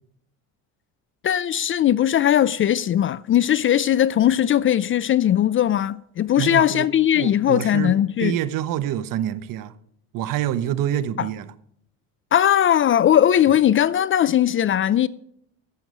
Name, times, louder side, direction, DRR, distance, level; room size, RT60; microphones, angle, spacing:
voice 1, 1.2-8.3 11.2-11.3 12.3-15.1, left 11 dB, 35° left, 0.4 m, -19 dB
voice 2, 6.4-6.9 7.1-7.9 8.2-9.7 10.1-11.5, right 11 dB, 55° right, 1.0 m, -26 dB
15.0 x 7.0 x 4.9 m
supercardioid pair, 85°, 39 cm